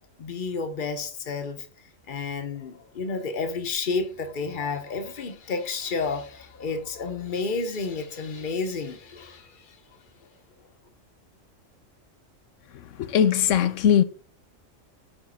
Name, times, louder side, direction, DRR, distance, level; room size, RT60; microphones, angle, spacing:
voice 1, 0.2-1.7 2.1-9.8, left 4 dB, 40° left, 1.1 m, -31 dB
voice 2, 13.0-14.0, left 9 dB, 70° left, 1.0 m, -20 dB
9.3 x 3.6 x 5.5 m
omnidirectional pair, 1.4 m